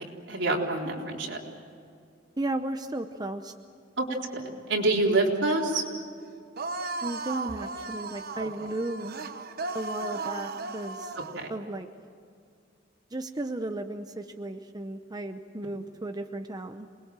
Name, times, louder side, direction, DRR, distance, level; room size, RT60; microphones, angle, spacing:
voice 1, 0.3-1.4 4.0-4.1 4.3-5.8 11.4-11.5, right 2 dB, 75° right, -1 dB, 4.0 m, -26 dB
voice 2, 2.4-3.5 7.0-9.1 9.7-11.1 11.5-11.9 13.1-16.9, right 2 dB, 20° right, 6 dB, 0.8 m, -34 dB
sound 1, 6.6-11.5, right 3 dB, 55° right, 1.1 m, -36 dB
27.5 x 21.0 x 7.6 m, 2.3 s
head